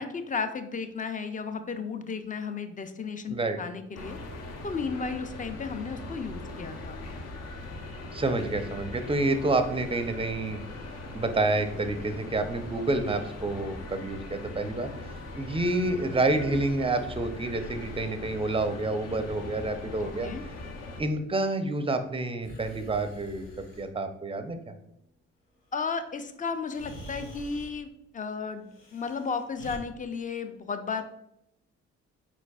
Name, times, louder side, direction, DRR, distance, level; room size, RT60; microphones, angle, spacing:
voice 1, 0.0-4.2 4.6-7.0 20.0-20.4 25.7-27.9 28.1-31.0, left 5 dB, 25° left, 9 dB, 0.5 m, -34 dB
sound 1, 3.9-21.0, left 2 dB, 55° left, 0.8 m, -40 dB
voice 2, 8.1-10.6 11.1-14.9 15.4-20.3 21.0-23.5 23.8-24.6, right 2 dB, 15° right, 8 dB, 0.6 m, -28 dB
Breathing, 18.8-19.7 22.4-23.9 26.0-26.1 26.7-27.8 28.7-29.8, equal, 80° left, 1.1 m, -46 dB
4.5 x 4.2 x 2.3 m, 0.82 s
hypercardioid pair, 50°, 32 cm